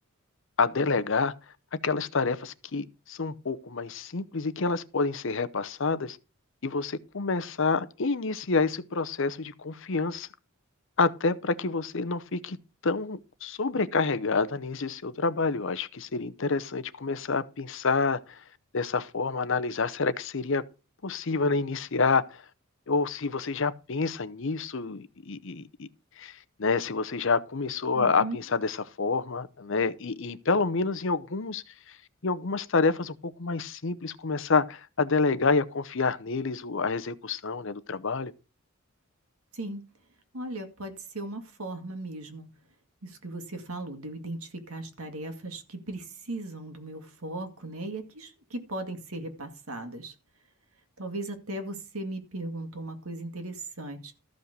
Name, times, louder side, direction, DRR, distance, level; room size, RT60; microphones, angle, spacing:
voice 1, 0.6-1.3 1.7-6.2 6.6-10.3 11.0-12.6 12.8-18.4 18.7-20.6 21.0-22.4 22.9-25.9 26.2-32.0 32.2-38.3, left 4 dB, 60° left, 0.8 m, -28 dB
voice 2, 27.9-28.4 39.5-39.8 40.3-42.5 43.0-50.1 51.0-54.1, right 2 dB, 85° right, 2.2 m, -37 dB
13.5 x 5.2 x 6.7 m
head